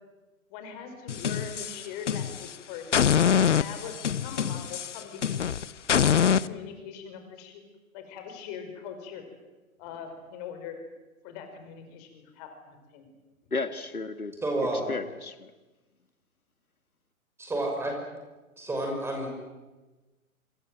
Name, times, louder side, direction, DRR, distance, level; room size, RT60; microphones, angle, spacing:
voice 1, 0.5-2.8 3.5-5.5 6.0-7.6 7.9-9.2 9.8-10.8 11.2-13.1, left 7 dB, 30° left, 6 dB, 5.4 m, -41 dB
sound 1, 1.1-2.5 2.9-6.5, left 8 dB, 55° left, 1.0 m, -25 dB
voice 2, 13.5-15.5, left 3 dB, 80° left, 11 dB, 1.7 m, -34 dB
voice 3, 14.4-14.9 17.4-17.9 18.6-19.3, right 1 dB, 5° right, 1 dB, 5.8 m, -29 dB
27.5 x 26.0 x 7.8 m, 1.2 s
figure-of-eight pair, 125°, 43 cm